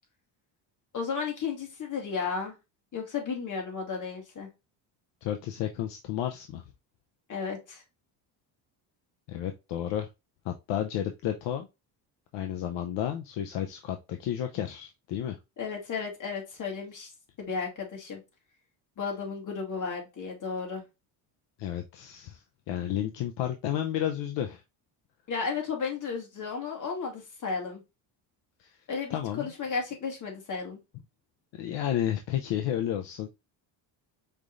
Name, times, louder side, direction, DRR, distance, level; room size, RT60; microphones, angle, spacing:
voice 1, 0.9-2.6 2.9-4.5 7.3-7.8 15.6-17.1 17.5-18.2 19.0-20.8 25.3-27.8 28.9-30.8, left 5 dB, 40° left, 2.0 m, -33 dB
voice 2, 5.2-6.6 9.3-10.1 10.4-11.7 12.3-15.4 21.6-24.6 28.6-28.7 29.1-29.5 31.6-33.3, left 10 dB, 70° left, 0.7 m, -32 dB
5.1 x 3.3 x 2.5 m
cardioid pair, 115°, 45 cm